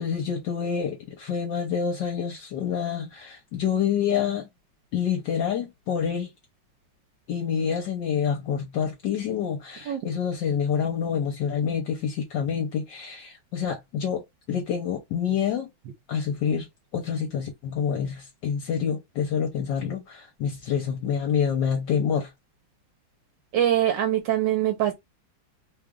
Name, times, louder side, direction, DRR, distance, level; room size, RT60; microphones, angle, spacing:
voice 1, 0.0-4.5 4.9-6.3 7.3-15.7 16.1-22.3, left 7 dB, 65° left, 1.3 m, -27 dB
voice 2, 23.5-24.9, right 11 dB, 70° right, 1.3 m, -23 dB
3.3 x 2.4 x 3.6 m
omnidirectional pair, 2.2 m